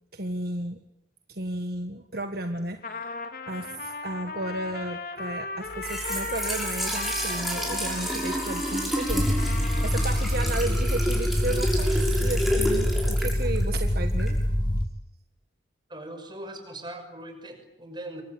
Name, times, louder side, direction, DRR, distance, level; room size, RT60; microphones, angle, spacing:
voice 1, 0.1-0.8 1.3-3.1 3.5-14.4, right 1 dB, 55° right, 6 dB, 1.7 m, -33 dB
Trumpet, 2.8-10.7, left 3 dB, 50° left, 3.1 m, -37 dB
Trickle dribble / Fill (with liquid), 5.7-14.5, equal, ahead, 6.6 m, -30 dB
sound 1, 9.1-14.9, equal, 25° left, 1.7 m, -25 dB
voice 2, 15.9-18.2, right 1 dB, 25° right, 6 dB, 6.1 m, -40 dB
27.5 x 24.0 x 8.7 m, 0.81 s
head